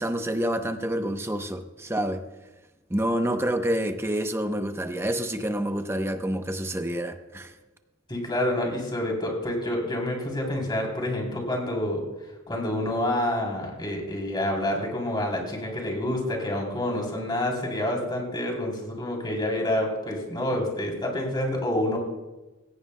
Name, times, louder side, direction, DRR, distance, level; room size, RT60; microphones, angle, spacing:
voice 1, 0.0-2.2 2.9-7.5, right 1 dB, 10° right, 7 dB, 0.7 m, -28 dB
voice 2, 8.1-12.0 12.5-22.0, left 1 dB, 20° left, 0 dB, 3.2 m, -28 dB
17.0 x 16.5 x 2.2 m, 1.1 s
head